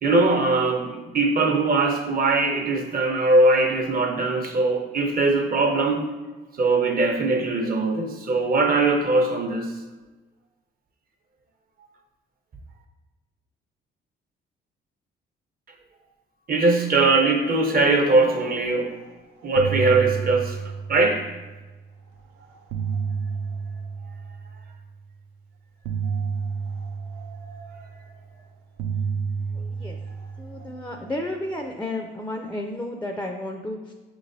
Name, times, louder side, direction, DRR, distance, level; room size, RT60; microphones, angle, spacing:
voice 1, 0.0-6.0 6.6-9.7 16.5-19.0 19.4-20.6 20.9-21.3, right 3 dB, 45° right, 3 dB, 0.8 m, -21 dB
sound 1, 18.9-19.1 19.4-21.7 22.4-24.8 25.8-28.3 28.8-31.4, right 6 dB, 85° right, 0.5 m, -31 dB
voice 2, 30.4-33.9, left 1 dB, 10° left, 3 dB, 0.4 m, -32 dB
6.2 x 3.1 x 2.6 m, 1.2 s
cardioid pair, 90°, 20 cm